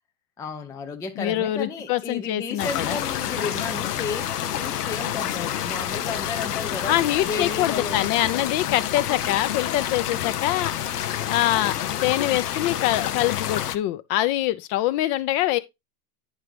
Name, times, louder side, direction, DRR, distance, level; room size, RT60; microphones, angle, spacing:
voice 1, 0.4-7.0 7.3-8.1, left 4 dB, 10° left, 0.4 m, -33 dB
voice 2, 1.2-3.0 6.9-10.7 11.3-15.6, left 14 dB, 45° left, 0.8 m, -24 dB
sound 1, 2.6-13.8, left 11 dB, 90° left, 0.8 m, -28 dB
9.3 x 4.8 x 3.4 m
hypercardioid pair, 115°, 46 cm